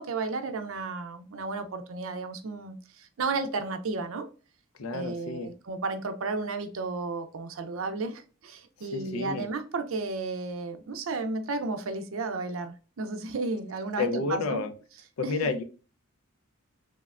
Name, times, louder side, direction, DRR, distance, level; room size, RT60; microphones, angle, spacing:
voice 1, 0.0-4.3 4.9-14.6 15.2-15.5, right 3 dB, 70° right, 0.5 m, -33 dB
voice 2, 4.8-5.5 8.9-9.5 14.0-14.7 15.2-15.6, left 4 dB, 90° left, 0.5 m, -30 dB
3.2 x 2.1 x 2.3 m
head